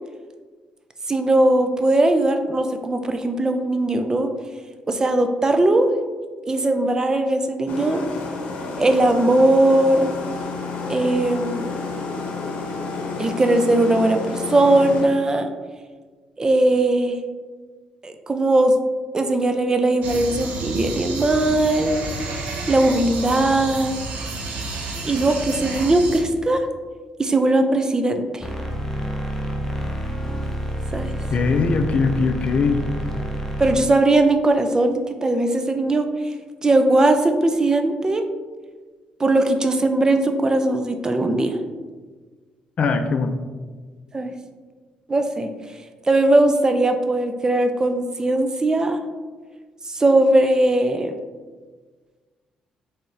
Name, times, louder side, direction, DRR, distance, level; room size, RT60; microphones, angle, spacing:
voice 1, 1.1-4.3 4.9-5.9 6.5-8.0 8.8-10.1 10.9-11.6 13.2-15.5 16.4-17.2 18.0-18.7 19.1-21.9 22.7-24.0 25.0-26.7 27.2-28.5 30.9-31.1 33.6-36.1 36.6-38.2 39.2-41.6 44.1-44.3 45.1-45.5 46.1-49.0 49.9-51.1, right 2 dB, 25° right, 7 dB, 0.4 m, -19 dB
sound 1, 7.7-15.1, left 4 dB, 70° left, 0.8 m, -30 dB
sound 2, 20.0-26.2, right 3 dB, 75° right, 0.9 m, -30 dB
sound 3, 28.4-33.8, equal, 15° left, 0.8 m, -28 dB
voice 2, 31.3-32.8 42.8-43.4, left 4 dB, 50° left, 7 dB, 0.5 m, -20 dB
4.3 x 3.7 x 3.2 m, 1.4 s
cardioid pair, 80°, 3 cm